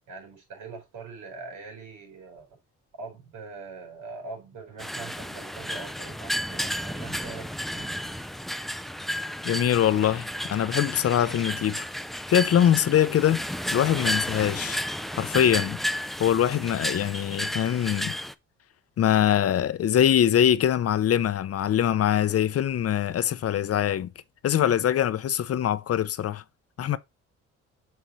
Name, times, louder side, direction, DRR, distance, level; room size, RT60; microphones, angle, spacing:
voice 1, 0.1-2.5 2.9-8.1, right 4 dB, 80° right, 4.4 m, -42 dB
sound 1, 4.8-18.3, equal, ahead, 0.5 m, -32 dB
voice 2, 9.5-11.9 12.3-13.4 13.7-14.8 15.1-15.8 16.2-18.1 19.0-24.1 24.4-26.4 26.8-27.0, left 10 dB, 50° left, 0.7 m, -23 dB
7.5 x 4.4 x 3.2 m
cardioid pair, 90°, 30 cm